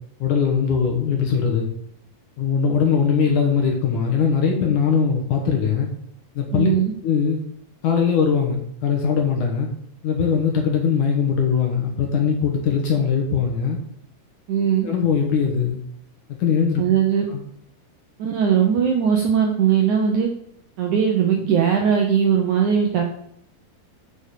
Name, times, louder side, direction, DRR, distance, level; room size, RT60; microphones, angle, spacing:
voice 1, 0.2-1.7 2.4-5.9 6.4-6.7 7.0-7.4 7.8-9.7 10.0-13.8 14.8-15.8 16.4-16.8 17.3-17.4, left 6 dB, 60° left, 2 dB, 2.4 m, -21 dB
voice 2, 6.5-6.9 14.5-14.9 16.8-17.3 18.2-20.3 20.8-23.0, right 8 dB, 70° right, 2 dB, 1.9 m, -19 dB
7.2 x 6.9 x 6.7 m, 0.71 s
omnidirectional pair, 4.7 m